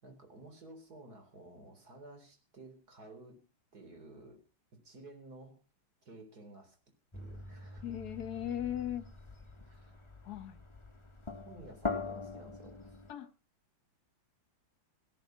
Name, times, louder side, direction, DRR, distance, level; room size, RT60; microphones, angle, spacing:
voice 1, 0.0-3.4 3.7-4.4 4.7-5.6 6.0-6.8 7.1-7.8 9.6-10.0 11.5-13.0, right 2 dB, 50° right, 4.3 m, -53 dB
sound 1, 7.1-13.1, left 4 dB, 20° left, 1.1 m, -43 dB
voice 2, 7.8-9.0 10.3-10.6 13.1-13.3, left 11 dB, 55° left, 1.8 m, -37 dB
17.5 x 11.0 x 5.9 m
omnidirectional pair, 2.1 m